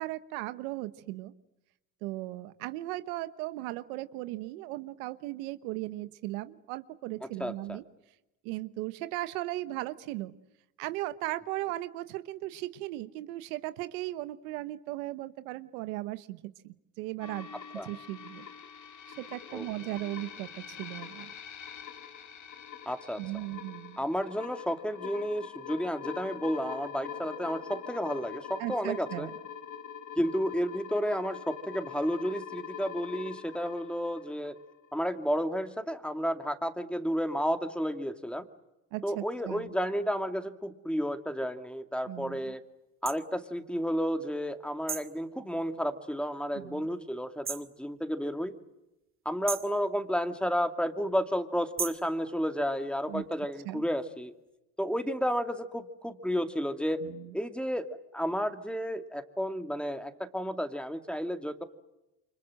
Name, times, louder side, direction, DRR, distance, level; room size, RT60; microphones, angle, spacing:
voice 1, 0.0-1.3 2.0-7.8 8.4-10.3 10.8-17.5 17.8-18.5 19.2-21.3 23.2-24.0 28.6-29.3 38.9-39.7 42.1-42.4 46.5-46.9 53.1-53.2 53.6-53.8 57.0-57.3, right 17 dB, 90° right, 12 dB, 1.2 m, -37 dB
voice 2, 7.4-7.8 17.8-17.9 19.5-19.6 22.9-23.2 24.0-29.3 30.2-34.6 34.9-38.5 39.0-42.6 43.0-48.5 49.2-54.3 54.8-57.0 57.3-61.6, equal, ahead, 7 dB, 2.4 m, -32 dB
sound 1, 17.2-35.1, left 8 dB, 45° left, 2.8 m, -44 dB
sound 2, 43.0-43.2 44.9-45.2 47.4-47.7 49.5-49.8 51.8-52.1, right 6 dB, 30° right, 2.5 m, -35 dB
28.5 x 25.0 x 7.7 m, 0.93 s
supercardioid pair, 85°, 41 cm